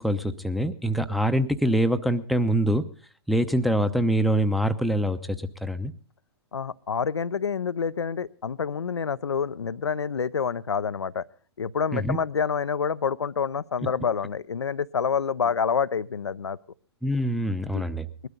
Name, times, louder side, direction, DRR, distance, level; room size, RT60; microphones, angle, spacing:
voice 1, 0.0-2.8 3.3-5.9 11.9-12.2 17.0-18.1, right 1 dB, ahead, 8 dB, 0.8 m, -24 dB
voice 2, 6.5-11.2 11.6-16.6 17.7-17.8, left 6 dB, 85° left, 18 dB, 0.6 m, -27 dB
20.5 x 12.5 x 3.9 m, 0.42 s
figure-of-eight pair, 110°, 14 cm